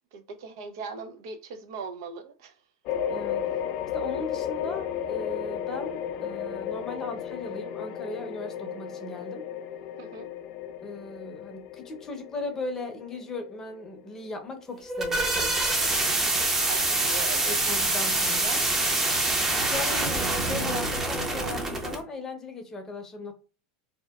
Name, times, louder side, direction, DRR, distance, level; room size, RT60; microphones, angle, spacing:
voice 1, 0.1-2.5 10.0-10.3 16.7-17.6, right 5 dB, 70° right, 0.5 m, -39 dB
sound 1, 2.9-15.7, left 9 dB, 50° left, 0.4 m, -34 dB
voice 2, 3.1-3.5 3.9-9.5 10.8-15.6 17.5-18.7 19.6-23.3, left 2 dB, 20° left, 0.7 m, -37 dB
sound 2, 14.7-22.0, right 2 dB, 15° right, 0.7 m, -26 dB
2.7 x 2.2 x 2.3 m
supercardioid pair, 115°, 2 cm